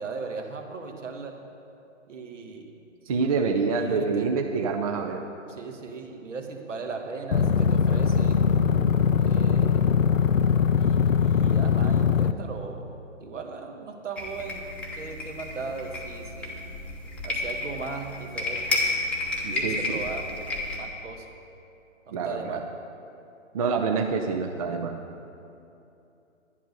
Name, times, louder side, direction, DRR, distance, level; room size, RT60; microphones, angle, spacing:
voice 1, 0.0-1.4 2.1-2.7 3.7-4.3 5.5-8.5 9.2-9.9 10.8-12.9 13.2-14.7 14.9-16.6 17.2-18.8 19.5-20.3 20.7-21.3 22.1-22.6, right 4 dB, 65° right, 3 dB, 1.7 m, -38 dB
voice 2, 3.1-5.2 19.4-20.1 22.1-22.6 23.5-25.0, right 4 dB, 30° right, 3 dB, 0.5 m, -26 dB
sound 1, 7.3-12.3, left 7 dB, 80° left, 0.6 m, -21 dB
sound 2, 14.1-20.8, left 2 dB, 5° left, 0.8 m, -31 dB
11.0 x 11.0 x 5.3 m, 2.8 s
figure-of-eight pair, 135°, 39 cm